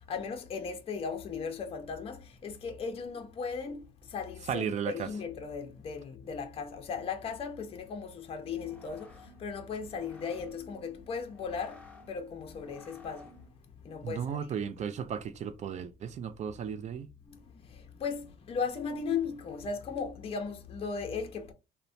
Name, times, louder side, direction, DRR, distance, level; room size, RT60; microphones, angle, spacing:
voice 1, 0.1-11.8 12.1-13.3 13.8-14.4 17.3-21.5, left 5 dB, 35° left, 0.5 m, -37 dB
voice 2, 4.5-5.1 14.0-17.1, right 7 dB, 45° right, 0.4 m, -35 dB
sound 1, 8.3-13.6, left 2 dB, 5° left, 0.8 m, -54 dB
3.0 x 2.1 x 2.5 m
cardioid pair, 110°, 17 cm